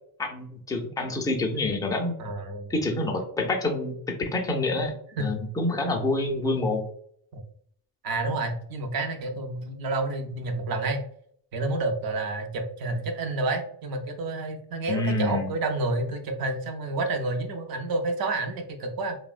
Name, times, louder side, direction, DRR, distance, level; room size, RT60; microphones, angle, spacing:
voice 1, 0.2-2.2 2.7-6.9 14.9-15.5, left 2 dB, 10° left, 2 dB, 0.4 m, -27 dB
voice 2, 2.2-2.8 5.2-5.4 7.3-7.4 8.0-11.0 11.5-19.2, right 2 dB, 50° right, 5 dB, 0.6 m, -29 dB
2.8 x 2.1 x 2.4 m, 0.63 s
cardioid pair, 95°, 49 cm